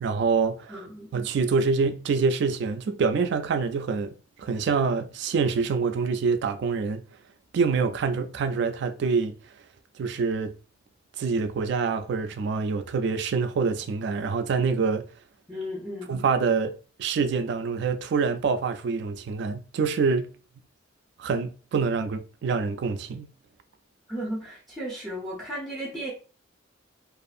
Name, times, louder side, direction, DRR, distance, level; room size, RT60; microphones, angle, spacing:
voice 1, 0.0-0.8 1.1-4.1 4.4-7.0 7.5-9.4 10.0-10.5 11.2-15.1 16.1-16.7 17.0-20.3 21.2-23.3, right 5 dB, 65° right, 0.3 m, -26 dB
voice 2, 0.7-1.1 15.5-16.1 24.1-26.1, equal, ahead, 0.7 m, -34 dB
2.6 x 2.4 x 2.5 m
head